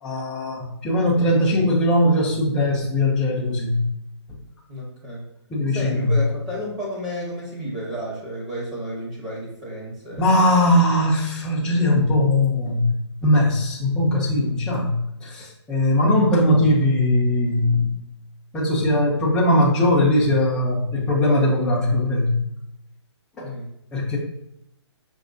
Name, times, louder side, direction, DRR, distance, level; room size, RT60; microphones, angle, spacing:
voice 1, 0.0-3.8 5.5-6.2 10.2-12.9 13.2-14.9 15.2-17.9 18.5-22.3 23.4-23.5 23.9-24.2, left 1 dB, 5° left, -5 dB, 0.4 m, -20 dB
voice 2, 4.7-5.3 5.7-10.3 23.4-23.7, equal, 20° right, -5 dB, 0.8 m, -32 dB
5.2 x 3.0 x 2.5 m, 0.80 s
hypercardioid pair, 160°, 15 cm